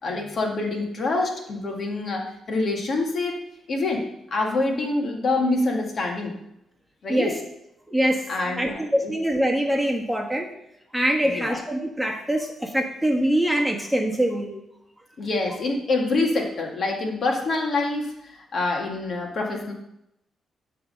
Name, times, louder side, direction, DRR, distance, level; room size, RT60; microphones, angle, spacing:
voice 1, 0.0-3.4 3.7-4.0 4.3-6.3 7.0-7.3 8.3-9.1 11.2-11.6 15.2-19.7, left 2 dB, 55° left, 1 dB, 1.8 m, -26 dB
voice 2, 7.9-8.2 8.6-10.5 10.9-14.5, right 1 dB, ahead, 0 dB, 1.5 m, -23 dB
11.0 x 3.8 x 6.6 m, 0.81 s
cardioid pair, 90°, 0 cm